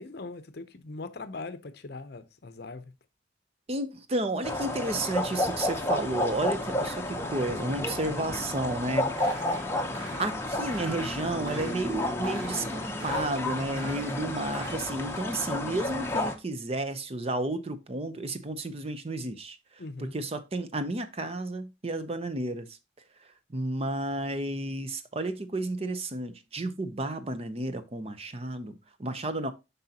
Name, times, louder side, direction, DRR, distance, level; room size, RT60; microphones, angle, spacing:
voice 1, 0.0-2.9 19.8-20.1, left 3 dB, 55° left, 0.7 m, -41 dB
voice 2, 3.7-9.1 9.5-9.6 10.2-19.6 20.0-22.7 23.5-28.7 29.0-29.5, right 2 dB, 30° right, 0.6 m, -32 dB
sound 1, 4.4-16.3, left 1 dB, 15° left, 0.8 m, -31 dB
sound 2, 9.0-14.9, right 2 dB, 90° right, 2.1 m, -47 dB
7.8 x 5.5 x 2.8 m
head